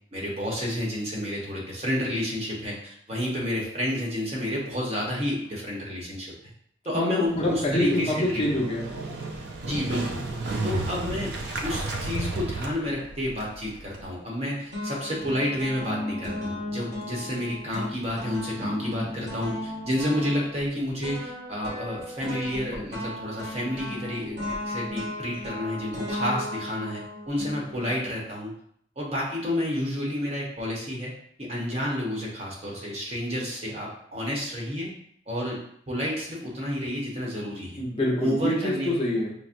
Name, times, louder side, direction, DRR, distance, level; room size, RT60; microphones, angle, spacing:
voice 1, 0.1-6.3 6.8-8.4 9.6-10.2 10.6-11.3 11.6-24.4 24.6-28.5 29.0-31.1 31.4-34.9 35.3-35.6 35.9-37.8 38.2-38.9, left 1 dB, 35° right, -4 dB, 0.9 m, -30 dB
voice 2, 6.9-8.9 37.8-39.3, left 1 dB, 30° left, -5 dB, 0.7 m, -26 dB
Motorcycle, 7.3-14.1, right 2 dB, 60° right, 0.5 m, -33 dB
sound 1, 13.9-14.4 14.7-28.1, left 1 dB, 80° right, 1.3 m, -36 dB
5.6 x 2.0 x 2.5 m, 0.69 s
head